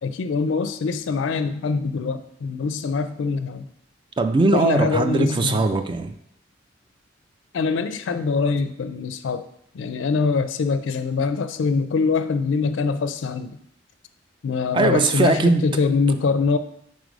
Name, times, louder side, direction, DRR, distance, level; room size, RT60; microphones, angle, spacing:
voice 1, 0.0-3.7 4.5-5.6 7.5-9.5 9.7-13.6 14.4-16.6, left 4 dB, 70° left, 0.4 m, -23 dB
voice 2, 4.2-6.1 14.7-15.6, right 3 dB, 25° right, 0.3 m, -20 dB
4.7 x 4.2 x 5.1 m
head